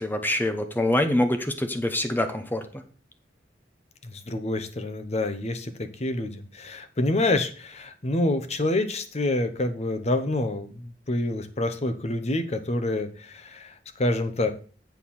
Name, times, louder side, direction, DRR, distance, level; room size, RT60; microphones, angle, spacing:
voice 1, 0.0-2.8, left 1 dB, 10° left, 7 dB, 1.0 m, -25 dB
voice 2, 4.0-14.5, left 2 dB, 40° left, 8 dB, 0.9 m, -27 dB
8.2 x 4.3 x 7.1 m, 0.40 s
head